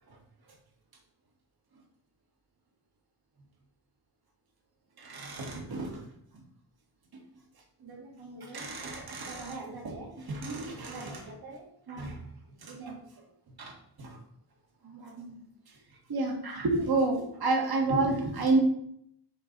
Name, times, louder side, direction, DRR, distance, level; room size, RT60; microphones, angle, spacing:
voice 1, 5.0-6.1 7.8-12.2 12.6-13.0 13.6-14.2 14.8-15.4 16.1-18.6, right 3 dB, 60° right, 1 dB, 1.7 m, -31 dB
6.8 x 3.9 x 5.4 m, 0.70 s
wide cardioid pair, 145°, 42 cm